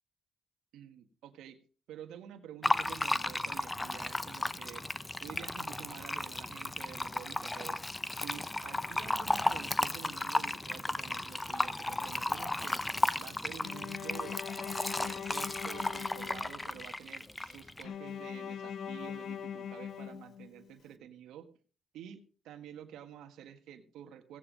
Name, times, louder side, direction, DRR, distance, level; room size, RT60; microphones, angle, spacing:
voice 1, 0.7-1.6 1.9-4.9 5.2-7.8 8.1-12.8 13.1-14.4 15.0-21.5 21.9-24.4, right 10 dB, 85° right, 8 dB, 1.5 m, -49 dB
Fill (with liquid), 2.6-17.8, left 2 dB, 15° left, 0.9 m, -34 dB
Bowed string instrument, 13.6-16.8 17.8-20.8, left 8 dB, 65° left, 1.3 m, -42 dB
16.5 x 9.2 x 5.1 m, 0.40 s
cardioid pair, 90°, 0 cm